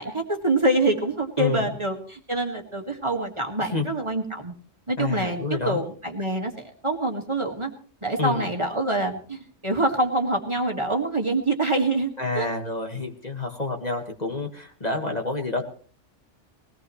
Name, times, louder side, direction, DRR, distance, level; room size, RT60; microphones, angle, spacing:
voice 1, 0.0-4.5 4.9-7.7 8.0-12.5, right 2 dB, 25° right, 2 dB, 1.9 m, -26 dB
voice 2, 1.4-1.7 3.6-3.9 5.0-5.8 8.2-8.5 12.2-15.6, left 3 dB, 35° left, 2 dB, 1.8 m, -28 dB
21.0 x 17.5 x 3.2 m, 0.42 s
omnidirectional pair, 1.2 m